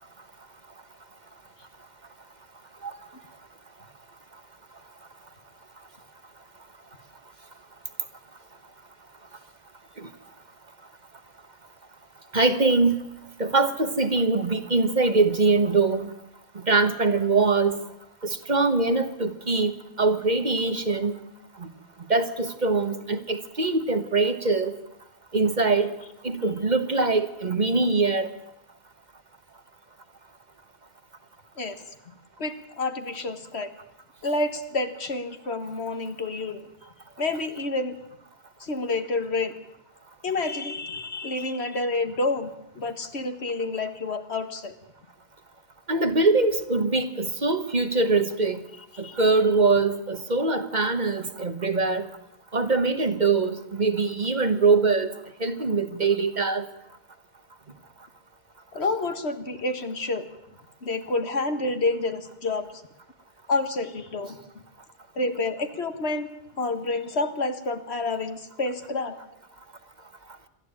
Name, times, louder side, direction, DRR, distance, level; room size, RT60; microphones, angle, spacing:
voice 1, 12.3-12.9 13.4-16.1 16.5-17.8 18.2-21.2 21.6-21.7 22.1-24.7 25.3-25.9 26.2-28.3 45.9-48.6 49.0-52.1 52.5-55.1 55.4-56.6, right 3 dB, 40° right, 9 dB, 1.4 m, -23 dB
voice 2, 32.4-33.7 34.2-36.7 37.2-38.0 38.6-39.5 40.2-44.7 49.0-49.2 58.7-60.3 60.8-62.7 63.5-64.4 65.2-66.3 66.6-69.2, left 3 dB, 70° left, 8 dB, 1.9 m, -29 dB
27.0 x 12.0 x 8.9 m, 0.85 s
omnidirectional pair, 1.1 m